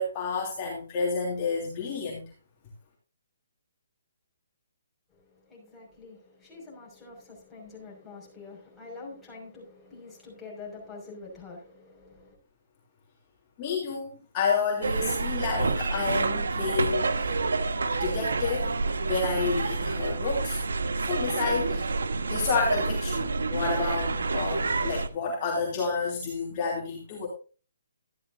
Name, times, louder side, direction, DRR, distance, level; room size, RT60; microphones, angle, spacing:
voice 1, 0.0-2.3 13.6-14.1 14.3-17.4 17.9-18.7 19.0-20.6 21.0-21.9 22.3-27.3, left 4 dB, 25° left, 3.0 m, -30 dB
voice 2, 5.1-12.4, left 3 dB, 5° left, 5.8 m, -46 dB
sound 1, 14.8-25.1, right 3 dB, 85° right, 1.4 m, -28 dB
13.5 x 11.0 x 2.7 m
hypercardioid pair, 165°, 0 cm